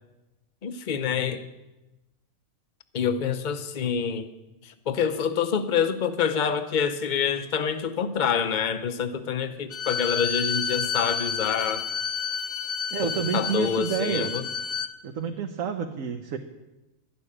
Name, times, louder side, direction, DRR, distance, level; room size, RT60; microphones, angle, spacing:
voice 1, 0.6-1.4 2.9-4.3 4.6-11.9 13.0-14.4, left 7 dB, 40° left, 10 dB, 0.8 m, -27 dB
Bowed string instrument, 9.7-14.9, left 7 dB, 75° left, 1.2 m, -30 dB
voice 2, 12.9-14.3 15.0-16.4, right 7 dB, 70° right, 5 dB, 1.2 m, -29 dB
12.0 x 7.0 x 9.8 m, 1.0 s
omnidirectional pair, 1.4 m